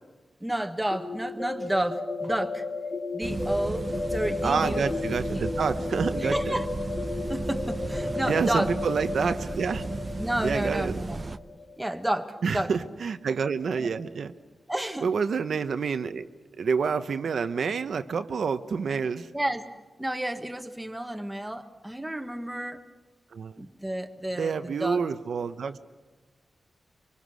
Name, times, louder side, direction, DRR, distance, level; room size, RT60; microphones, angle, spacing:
voice 1, 0.4-2.6 3.1-4.9 5.3-5.5 6.2-6.7 7.3-8.7 10.2-11.2 11.8-12.7 13.8-13.9 14.7-15.1 19.3-19.7 20.0-22.8 23.6-25.0, right 1 dB, 5° right, 6 dB, 1.3 m, -31 dB
sound 1, 0.9-12.6, left 3 dB, 30° left, 2.1 m, -34 dB
sound 2, 3.2-11.4, right 2 dB, 30° right, 0.7 m, -35 dB
voice 2, 4.4-6.6 8.3-9.9 10.4-11.0 12.4-14.3 15.0-16.3 16.6-19.3 23.3-23.6 24.4-25.8, right 5 dB, 70° right, 9 dB, 0.9 m, -28 dB
25.0 x 24.5 x 6.3 m, 1.2 s
wide cardioid pair, 145°, 0 cm